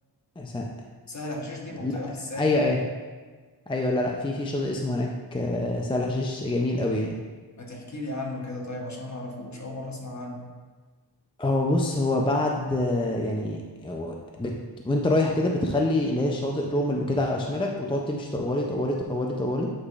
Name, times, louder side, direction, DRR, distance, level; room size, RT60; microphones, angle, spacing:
voice 1, 0.4-0.7 1.8-2.8 3.7-7.2 11.4-14.5 14.8-19.7, left 1 dB, 15° left, 0 dB, 0.4 m, -26 dB
voice 2, 1.1-2.5 7.6-10.4, left 2 dB, 40° left, 0 dB, 1.0 m, -35 dB
8.7 x 4.9 x 2.4 m, 1.4 s
wide cardioid pair, 130°, 42 cm